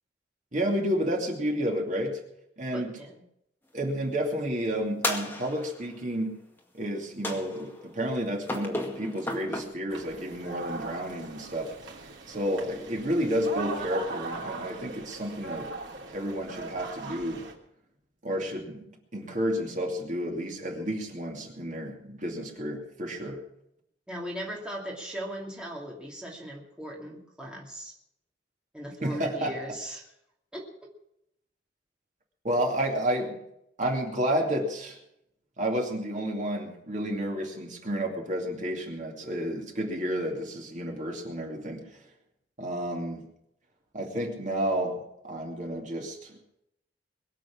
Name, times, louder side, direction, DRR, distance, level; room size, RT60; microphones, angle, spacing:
voice 1, 0.5-2.2 2.6-2.9 3.7-6.3 6.7-11.7 12.3-15.7 16.1-17.4 18.2-23.4 29.0-29.5 32.4-33.4 33.8-35.0 35.6-41.8 42.6-43.3 43.9-46.4, equal, 40° right, 1 dB, 2.6 m, -31 dB
voice 2, 2.7-3.2 24.1-27.9 28.7-30.0 30.5-30.9, equal, 5° right, -2 dB, 2.6 m, -38 dB
sound 1, 5.0-5.9 7.2-7.8 8.5-9.6, left 1 dB, 10° left, 2.1 m, -33 dB
sound 2, 9.9-17.5, right 3 dB, 85° right, 3.1 m, -39 dB
22.0 x 7.6 x 7.2 m, 0.78 s
head